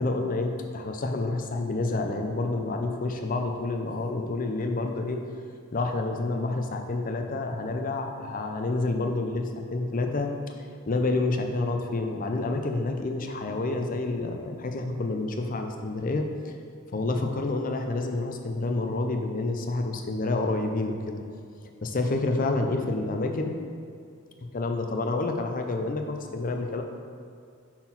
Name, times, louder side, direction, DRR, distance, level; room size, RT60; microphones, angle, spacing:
voice 1, 0.0-5.2 5.7-10.3 10.9-16.5 16.9-21.2 21.8-23.6 24.5-26.8, left 2 dB, 40° left, 4 dB, 0.5 m, -28 dB
5.9 x 4.3 x 5.8 m, 2.3 s
head